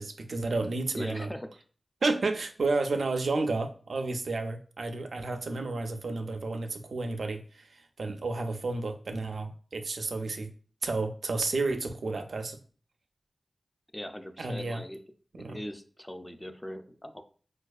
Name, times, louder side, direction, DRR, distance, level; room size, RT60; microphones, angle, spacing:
voice 1, 0.0-1.3 2.0-10.5 10.8-12.6 14.4-14.8 15.3-15.6, right 3 dB, 80° right, 6 dB, 0.3 m, -31 dB
voice 2, 0.9-1.5 13.9-15.0 15.4-17.2, equal, 15° left, 8 dB, 0.3 m, -40 dB
4.4 x 2.3 x 2.3 m, 0.42 s
wide cardioid pair, 70°, 0 cm